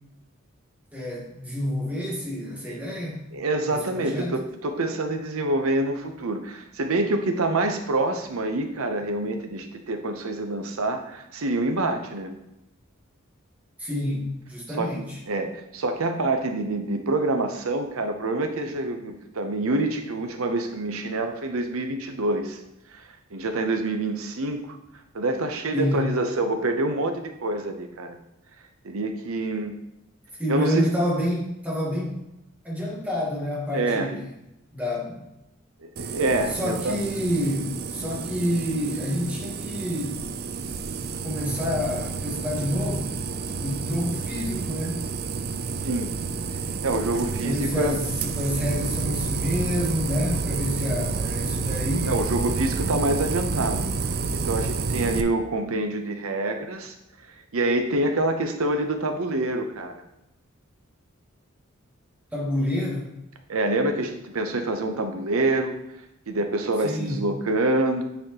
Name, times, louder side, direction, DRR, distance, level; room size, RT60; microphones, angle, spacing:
voice 1, 0.9-3.2 3.7-4.3 13.8-15.2 25.7-26.1 30.4-32.1 32.6-34.3 34.7-35.2 36.5-40.3 41.2-43.1 43.6-45.0 47.4-52.2 62.3-63.1 66.8-67.3, left 1 dB, 5° right, -4 dB, 1.5 m, -28 dB
voice 2, 3.3-12.3 14.8-22.6 22.9-24.6 25.1-28.2 28.8-29.7 30.5-30.9 33.7-34.1 35.8-37.0 45.8-46.1 46.8-48.0 52.0-53.8 54.3-56.9 57.5-60.0 63.5-65.7 66.3-68.0, right 2 dB, 80° right, 6 dB, 0.8 m, -26 dB
sound 1, 36.0-55.2, right 4 dB, 45° right, 0.4 m, -30 dB
9.3 x 4.2 x 2.9 m, 0.88 s
head